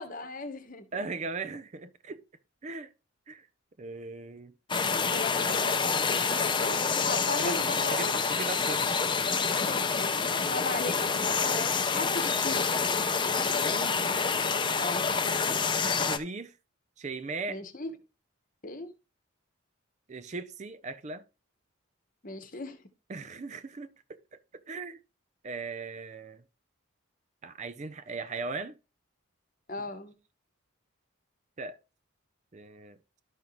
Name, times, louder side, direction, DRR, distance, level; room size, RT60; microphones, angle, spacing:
voice 1, 0.0-0.9 5.1-8.1 9.5-12.7 14.7-15.1 17.5-17.9 18.6-18.9 22.2-22.8 29.7-30.1, left 3 dB, 40° left, 1.0 m, -37 dB
voice 2, 0.9-2.2 2.6-2.9 3.3-3.5 3.8-4.5 5.5-5.6 7.4-9.0 9.3-9.5 13.4-13.9 15.9-16.5 17.0-17.6 20.1-21.2 23.1-24.4 24.7-25.0 25.4-26.4 27.4-28.8 31.6-31.8 32.5-33.0, right 3 dB, 35° right, 0.5 m, -38 dB
sound 1, 4.7-16.2, left 5 dB, 20° left, 0.6 m, -27 dB
12.0 x 5.4 x 3.0 m
head